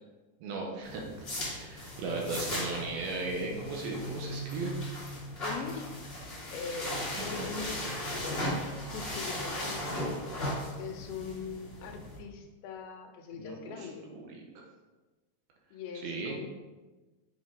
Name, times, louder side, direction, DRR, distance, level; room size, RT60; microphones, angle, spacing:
voice 1, 0.4-1.0 1.4-4.7 7.1-7.5 13.4-14.4 15.9-16.4, right 3 dB, 75° right, -1 dB, 2.4 m, -37 dB
sound 1, 0.8-12.2, left 1 dB, 30° left, 1.1 m, -37 dB
voice 2, 5.4-5.9 6.5-8.4 8.9-10.1 10.8-14.1 15.7-16.5, left 6 dB, 80° left, 4 dB, 2.9 m, -41 dB
7.2 x 6.1 x 3.6 m, 1.2 s
omnidirectional pair, 5.2 m